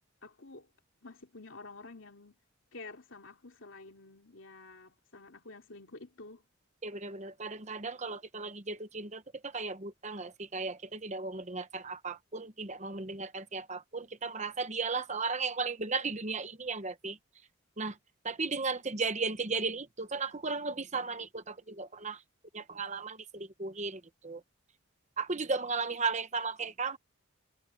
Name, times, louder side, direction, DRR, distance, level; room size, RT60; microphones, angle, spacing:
voice 1, 0.2-0.7 1.0-2.4 2.7-6.5, left 3 dB, 65° left, 2.9 m, -50 dB
voice 2, 6.8-17.2 17.8-18.0 18.2-22.2 22.5-24.4 25.2-27.0, right 4 dB, 30° right, 1.0 m, -35 dB
head